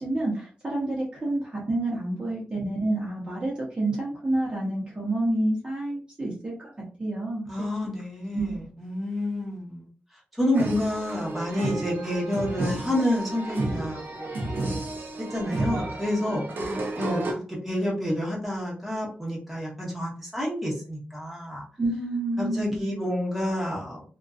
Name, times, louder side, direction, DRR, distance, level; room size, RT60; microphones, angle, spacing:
voice 1, 0.0-6.7 7.0-7.5 8.3-8.6 16.6-16.8 21.8-22.9, right 2 dB, 25° right, -5 dB, 0.7 m, -28 dB
voice 2, 7.5-9.9 10.4-14.8 15.3-16.4 17.0-21.6 22.4-24.2, left 1 dB, ahead, -5 dB, 1.0 m, -29 dB
sound 1, 10.5-17.3, right 2 dB, 65° right, 0.5 m, -32 dB
2.5 x 2.2 x 2.4 m, 0.39 s
wide cardioid pair, 130°, 4 cm